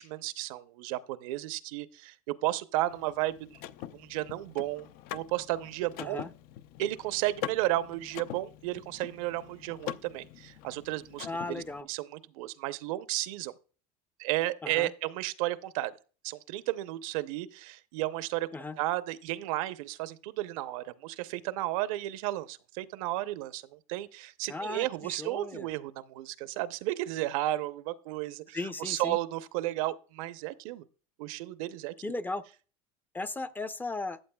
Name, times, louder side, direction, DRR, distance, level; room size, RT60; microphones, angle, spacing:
voice 1, 0.0-3.6 3.9-6.2 6.8-11.6 11.9-13.5 14.2-15.9 16.2-18.5 18.8-30.8 31.2-31.9, right 16 dB, 85° right, 0.7 m, -33 dB
Car / Mechanisms, 2.9-11.8, left 12 dB, 60° left, 0.6 m, -44 dB
voice 2, 6.0-6.3 11.2-11.9 14.6-14.9 18.5-18.8 24.5-25.7 28.5-29.2 32.0-32.4 33.1-34.2, left 2 dB, 10° left, 0.5 m, -36 dB
14.0 x 8.6 x 2.3 m
cardioid pair, 135°, 17 cm